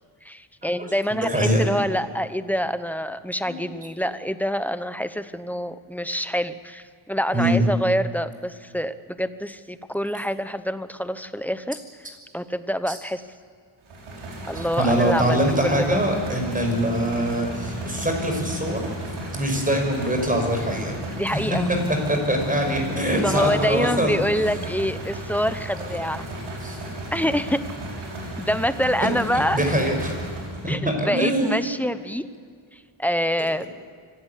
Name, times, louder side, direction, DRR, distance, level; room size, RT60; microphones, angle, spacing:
voice 1, 0.2-11.8 12.3-13.2 14.5-15.4 15.6-16.0 21.1-21.7 23.2-26.3 27.1-27.6 28.4-29.6 30.7-32.3 32.7-33.6, equal, 5° left, 12 dB, 0.9 m, -26 dB
voice 2, 1.3-1.6 3.4-3.6 7.3-7.6 12.9-13.0 14.5-18.8 19.3-21.0 21.3-21.6 21.9-24.2 24.4-24.6 26.6-26.8 29.5-30.2 30.6-31.7, right 1 dB, 15° right, 3 dB, 5.9 m, -23 dB
sound 1, 13.9-30.8, equal, 90° right, 6.5 m, -34 dB
25.0 x 16.5 x 8.4 m, 2.1 s
wide cardioid pair, 120°, 46 cm